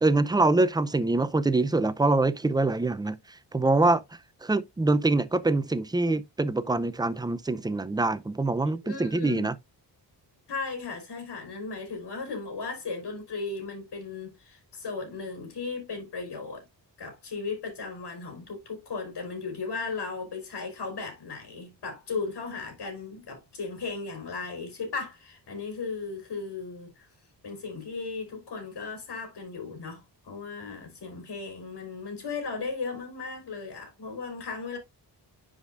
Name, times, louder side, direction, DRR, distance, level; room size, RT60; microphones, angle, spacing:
voice 1, 0.0-3.2 3.5-4.0 4.4-9.5, right 2 dB, 10° right, 0.5 m, -24 dB
voice 2, 8.8-9.5 10.5-16.6 17.0-27.1 27.4-34.8, left 4 dB, 65° left, 4.1 m, -36 dB
10.5 x 5.0 x 2.5 m
wide cardioid pair, 120°, 42 cm